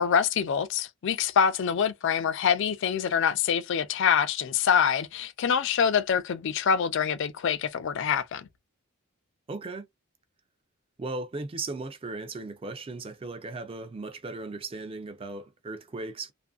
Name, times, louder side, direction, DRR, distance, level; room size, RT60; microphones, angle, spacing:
voice 1, 0.0-8.5, left 7 dB, 60° left, 0.4 m, -25 dB
voice 2, 9.5-9.9 11.0-16.3, right 3 dB, 25° right, 0.4 m, -37 dB
2.5 x 2.5 x 2.3 m
head